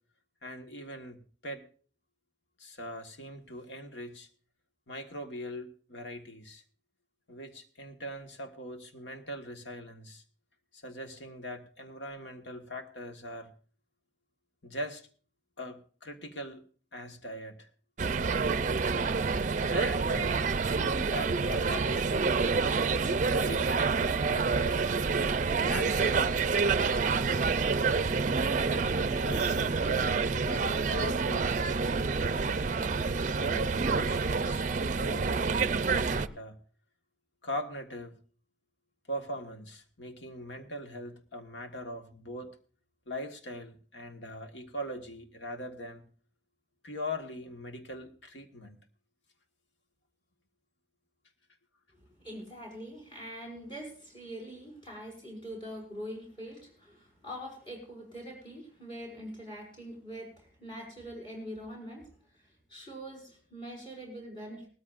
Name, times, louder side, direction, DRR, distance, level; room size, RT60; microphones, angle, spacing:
voice 1, 0.4-1.6 2.6-4.3 4.9-6.6 7.3-10.2 10.7-13.5 14.6-15.1 15.6-16.6 16.9-17.7 19.7-20.5 21.0-22.1 23.3-24.9 25.6-26.3 26.7-27.5 28.6-31.5 32.0-33.0 33.4-36.6 37.4-38.2 39.1-42.6 43.1-46.0 46.8-48.8, left 1 dB, 85° left, 6 dB, 1.6 m, -41 dB
sound 1, 18.0-36.3, right 4 dB, 45° right, 0.5 m, -28 dB
voice 2, 52.0-62.1 62.4-64.7, equal, 30° left, 0 dB, 5.7 m, -43 dB
19.0 x 13.5 x 2.5 m, 0.42 s
head